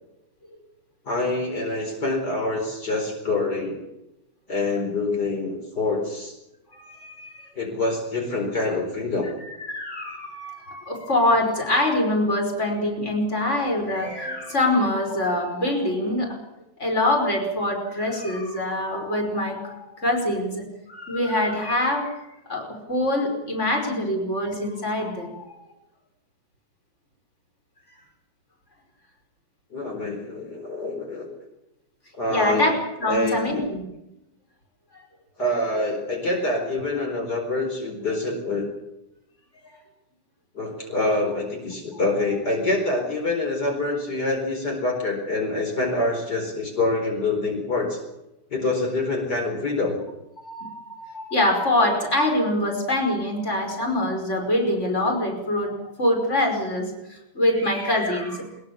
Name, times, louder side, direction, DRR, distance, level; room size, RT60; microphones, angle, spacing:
voice 1, 1.0-3.8 4.5-6.3 7.6-9.4 29.7-31.3 32.2-32.7 33.0-33.6 35.4-38.7 40.5-48.0 48.5-50.0, left 2 dB, 70° left, 1 dB, 5.1 m, -26 dB
voice 2, 6.7-7.5 9.4-16.4 16.8-25.6 32.3-32.7 33.0-33.8 34.9-35.0 39.6-39.8 50.4-58.5, left 1 dB, 40° left, 2 dB, 5.6 m, -24 dB
22.0 x 21.5 x 7.2 m, 0.91 s
omnidirectional pair, 1.8 m